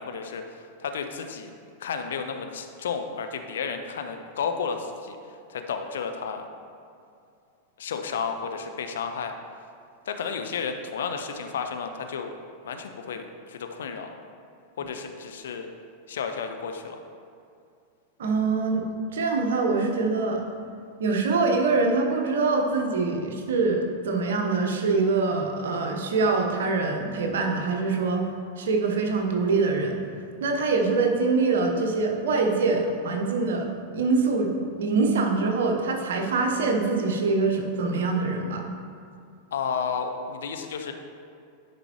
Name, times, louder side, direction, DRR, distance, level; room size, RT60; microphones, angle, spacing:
voice 1, 0.0-1.5 1.8-5.2 5.5-6.4 7.8-9.3 10.1-12.3 12.6-14.1 14.8-15.7 16.1-17.0 39.5-40.9, left 6 dB, 60° left, 6 dB, 0.6 m, -32 dB
voice 2, 18.2-20.4 21.0-28.3 28.6-30.0 30.4-34.5 34.8-38.7, right 3 dB, 60° right, 2 dB, 0.9 m, -24 dB
10.5 x 5.2 x 3.0 m, 2.4 s
figure-of-eight pair, 90°, 0 cm